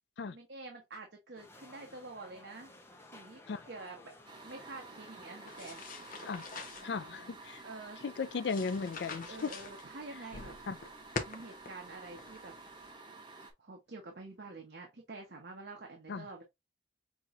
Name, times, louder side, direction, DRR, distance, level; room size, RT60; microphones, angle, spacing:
voice 1, 0.3-2.7 3.1-3.4 3.7-4.1 4.4-5.8 6.8-6.9 7.6-8.0 9.3-10.5 11.3-12.5 13.6-16.4, right 3 dB, 65° right, 0.9 m, -47 dB
sound 1, 1.3-6.3, left 2 dB, 15° left, 0.7 m, -56 dB
sound 2, 4.3-13.5, right 3 dB, 25° right, 0.9 m, -51 dB
sound 3, 5.5-12.9, left 4 dB, 45° left, 0.8 m, -46 dB
voice 2, 6.8-7.6 8.0-9.5 10.7-10.8 16.1-16.3, left 5 dB, 70° left, 0.4 m, -36 dB
6.0 x 2.9 x 2.5 m
head